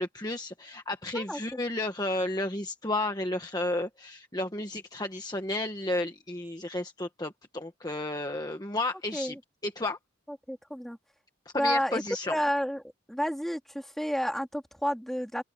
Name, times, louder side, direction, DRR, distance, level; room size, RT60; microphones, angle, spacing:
voice 1, 0.0-9.4 9.6-10.0 11.4-12.4, left 2 dB, 20° left, 1.4 m, -32 dB
voice 2, 1.1-1.6 9.1-9.4 10.5-11.0 11.6-12.0 12.3-12.8 13.1-15.4, equal, ahead, 2.9 m, -30 dB
open air
head